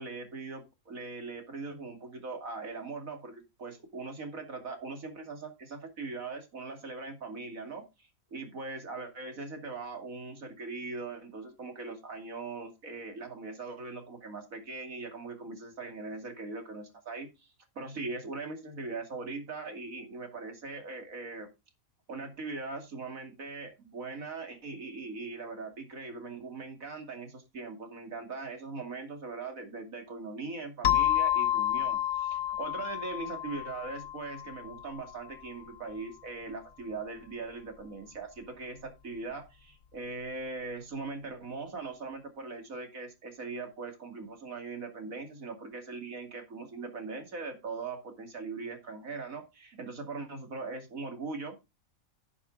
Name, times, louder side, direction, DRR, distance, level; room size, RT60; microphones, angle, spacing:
voice 1, 0.0-21.5 22.1-51.6, right 3 dB, 75° right, 5 dB, 2.8 m, -40 dB
sound 1, 30.8-35.2, left 11 dB, 80° left, 1.5 m, -30 dB
11.5 x 7.0 x 3.8 m, 0.25 s
omnidirectional pair, 1.5 m